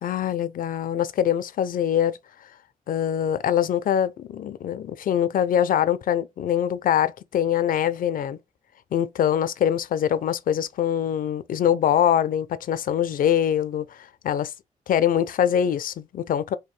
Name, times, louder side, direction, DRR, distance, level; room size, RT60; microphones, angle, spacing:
voice 1, 0.0-2.2 2.9-8.4 8.9-14.5 14.9-16.6, left 9 dB, 80° left, 0.4 m, -23 dB
4.6 x 2.7 x 3.2 m
wide cardioid pair, 115°, 14 cm